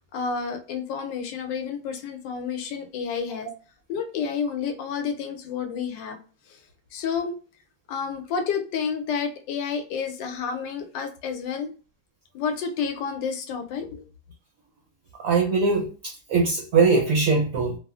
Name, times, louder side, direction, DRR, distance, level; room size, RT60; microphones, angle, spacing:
voice 1, 0.1-3.5 3.9-6.2 6.5-6.6 6.9-7.3 7.9-11.7 12.3-14.0, left 6 dB, 85° left, 5 dB, 1.3 m, -30 dB
voice 2, 15.2-17.8, right 4 dB, 65° right, 0 dB, 0.8 m, -21 dB
3.0 x 2.4 x 2.3 m, 0.37 s
omnidirectional pair, 1.8 m